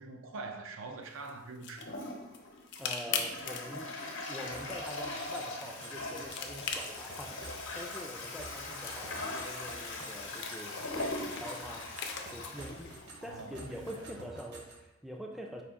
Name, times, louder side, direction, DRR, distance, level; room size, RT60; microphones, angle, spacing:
voice 1, 0.0-1.9 7.9-8.0 13.2-14.2, right 3 dB, 80° right, 0.5 m, -44 dB
sound 1, 1.0-14.0, left 6 dB, 55° left, 0.5 m, -44 dB
Toilet flush, 1.8-13.6, left 2 dB, 80° left, 0.9 m, -41 dB
voice 2, 2.8-3.9 4.3-10.8 11.2-11.9 12.3-12.9 13.2-15.6, equal, ahead, 0.3 m, -45 dB
sound 2, 4.5-14.8, right 2 dB, 55° right, 0.8 m, -51 dB
5.0 x 2.5 x 3.5 m
head